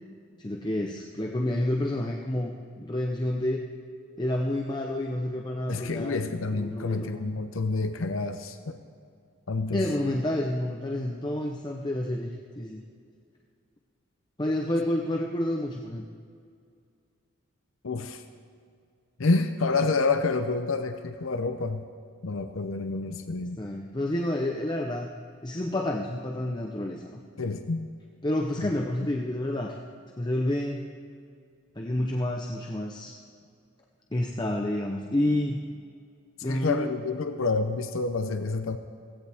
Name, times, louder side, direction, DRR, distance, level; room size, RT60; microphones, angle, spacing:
voice 1, 0.4-3.6 4.2-6.2 6.5-7.1 9.7-12.3 12.6-12.8 14.4-16.0 23.6-25.1 25.4-27.2 28.2-29.8 30.2-30.8 31.8-33.1 34.1-35.6 36.4-36.9, left 1 dB, 20° left, 1 dB, 0.7 m, -29 dB
voice 2, 5.7-8.8 9.5-9.9 17.8-18.2 19.2-21.8 22.2-23.6 27.4-27.9 28.6-28.7 29.0-29.1 36.4-38.8, left 3 dB, 70° left, 8 dB, 0.7 m, -28 dB
16.5 x 16.0 x 3.5 m, 2.3 s
head